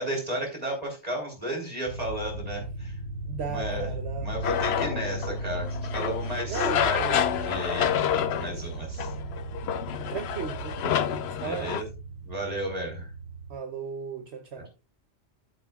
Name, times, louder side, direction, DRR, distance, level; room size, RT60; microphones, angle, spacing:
voice 1, 0.0-2.9 3.5-3.9 4.2-9.1 11.4-11.8 12.2-13.1, right 1 dB, 35° right, 4.1 m, -33 dB
sound 1, 1.8-13.5, right 2 dB, 45° left, 1.5 m, -36 dB
voice 2, 3.3-4.3 6.4-7.2 10.1-11.8 13.5-14.7, right 6 dB, 70° right, 1.2 m, -36 dB
sound 2, 4.4-11.8, left 9 dB, 65° left, 0.8 m, -29 dB
13.0 x 7.5 x 2.4 m
omnidirectional pair, 1.2 m